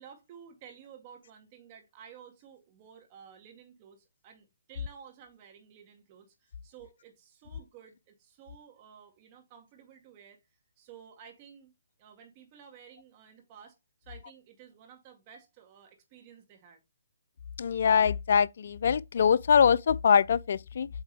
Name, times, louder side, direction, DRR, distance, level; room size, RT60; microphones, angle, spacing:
voice 1, 0.0-10.4 10.8-11.7 12.0-16.8, right 7 dB, 30° right, 1.9 m, -53 dB
voice 2, 17.6-20.9, left 7 dB, 60° left, 0.3 m, -23 dB
7.9 x 3.6 x 3.4 m
hypercardioid pair, 150°, 0 cm